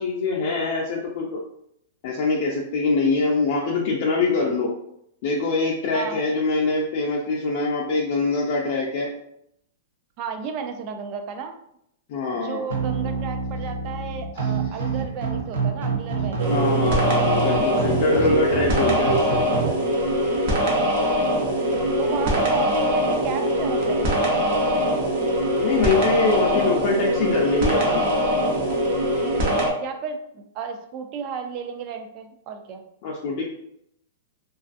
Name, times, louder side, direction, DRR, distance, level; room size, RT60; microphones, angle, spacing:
voice 1, 0.0-1.4 2.0-4.7 5.2-9.1 12.1-12.6 16.5-19.4 25.6-28.0 33.0-33.4, left 3 dB, 45° left, -3 dB, 0.4 m, -23 dB
voice 2, 10.2-11.5 12.4-16.8 20.7-21.5 22.0-24.2 26.3-27.0 29.8-32.8, right 6 dB, 35° right, 5 dB, 0.3 m, -33 dB
sound 1, 12.7-19.7, right 5 dB, 90° right, 0.7 m, -27 dB
sound 2, 16.4-29.7, equal, 55° right, 0.7 m, -22 dB
2.4 x 2.3 x 2.4 m, 0.75 s
hypercardioid pair, 155°, 0 cm